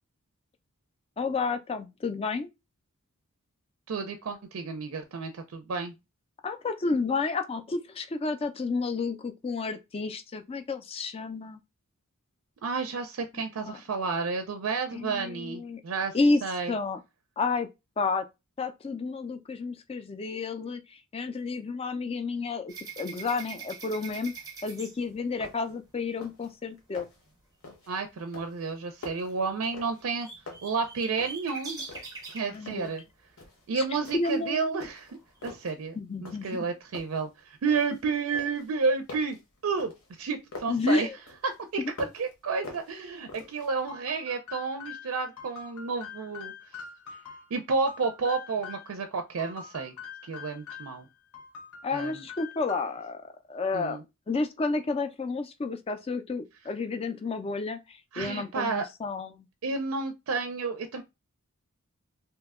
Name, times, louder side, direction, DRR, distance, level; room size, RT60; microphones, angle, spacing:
voice 1, 1.2-2.5 6.4-11.6 13.6-13.8 14.9-15.8 16.1-16.4 16.7-17.0 17.4-17.7 18.0-18.3 18.6-24.3 24.6-27.1 32.5-32.9 33.7-33.8 34.1-34.8 36.0-36.7 40.7-41.2 41.8-41.9 51.8-54.0 54.3-59.5, left 3 dB, 25° left, 0.3 m, -31 dB
voice 2, 3.9-5.9 12.6-16.2 16.4-16.7 27.9-30.3 30.6-31.8 32.3-33.0 33.7-35.1 35.4-36.0 36.2-39.4 39.6-41.1 41.4-41.8 42.1-46.5 47.5-49.9 50.2-51.1 51.9-52.2 53.7-54.0 58.1-58.8 59.6-61.0, right 4 dB, 70° right, 0.4 m, -31 dB
sound 1, 22.7-25.7 29.3-29.4 29.6-32.5 34.2-34.3 34.8-35.4, right 4 dB, 15° right, 0.7 m, -43 dB
sound 2, 24.9-25.0 25.4-25.8 26.1-26.5 26.8-27.3 27.6-28.0 28.3-30.2 30.5-31.5 31.8-33.0 33.4-33.6 34.0-34.5 34.8-35.7 36.2-36.6 36.9-38.0 38.3-40.8 41.3-42.3 42.6-43.7, left 3 dB, 70° left, 1.0 m, -46 dB
sound 3, 43.9-49.0 49.4-51.0 51.3-53.1, left 6 dB, 85° left, 0.7 m, -44 dB
2.8 x 2.1 x 3.5 m
head